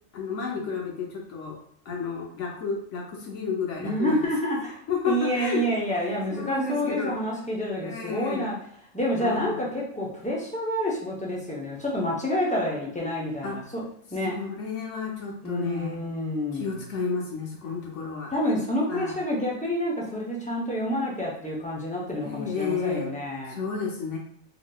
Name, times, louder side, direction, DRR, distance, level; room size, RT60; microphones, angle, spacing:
voice 1, 0.1-1.6 1.9-4.2 4.9-5.6 5.9-7.2 7.8-8.5 9.2-9.6 13.4-13.6 14.3-16.0 16.5-18.3 18.9-19.2 22.2-23.1 23.5-24.2, left 5 dB, 65° left, -1 dB, 1.0 m, -31 dB
voice 2, 3.8-4.8 5.1-8.5 8.9-13.8 14.1-14.3 15.4-16.8 18.3-23.6, equal, 10° left, -4 dB, 0.3 m, -28 dB
3.8 x 2.6 x 2.2 m, 0.66 s
omnidirectional pair, 1.4 m